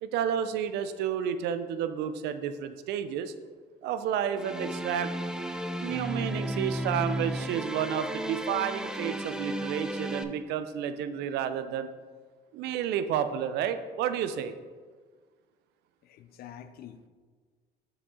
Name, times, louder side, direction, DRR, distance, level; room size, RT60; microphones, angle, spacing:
voice 1, 0.0-3.3 3.8-5.1 5.8-11.9 12.5-14.5, right 9 dB, 80° right, 11 dB, 0.5 m, -31 dB
sound 1, 4.4-10.2, right 1 dB, 5° right, 0.4 m, -34 dB
voice 2, 16.0-17.1, left 9 dB, 65° left, 10 dB, 0.5 m, -47 dB
6.8 x 5.1 x 3.7 m, 1.5 s
cardioid pair, 110°, 17 cm